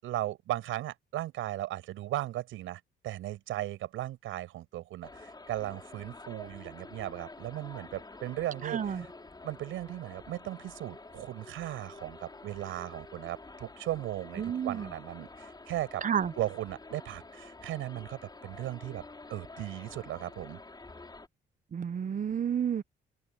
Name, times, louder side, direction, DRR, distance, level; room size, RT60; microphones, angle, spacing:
voice 1, 0.0-9.0 9.4-16.0 16.4-19.0 19.3-20.6, right 14 dB, 90° right, 7.8 m, -37 dB
sound 1, 5.0-21.3, left 3 dB, 20° left, 5.4 m, -49 dB
voice 2, 8.6-9.0 14.4-14.9 16.0-16.3 21.7-22.8, right 8 dB, 40° right, 0.8 m, -31 dB
open air
cardioid pair, 90°, 20 cm